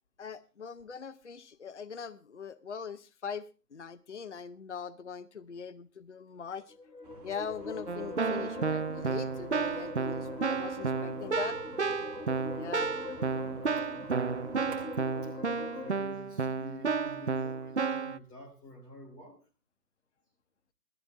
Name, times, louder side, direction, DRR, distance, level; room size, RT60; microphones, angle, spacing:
voice 1, 0.2-6.7 7.2-11.6 12.5-12.9, left 6 dB, 45° left, 16 dB, 0.8 m, -41 dB
sound 1, 6.6-16.0, left 3 dB, 70° left, 2.9 m, -43 dB
sound 2, 7.0-18.2, right 2 dB, 25° right, 4.3 m, -54 dB
Keyboard (musical), 7.9-18.2, right 4 dB, 45° right, 0.6 m, -32 dB
voice 2, 12.4-12.7 13.9-19.4, left 2 dB, 10° left, -1 dB, 3.1 m, -50 dB
15.0 x 14.0 x 3.4 m, 0.33 s
figure-of-eight pair, 155°, 48 cm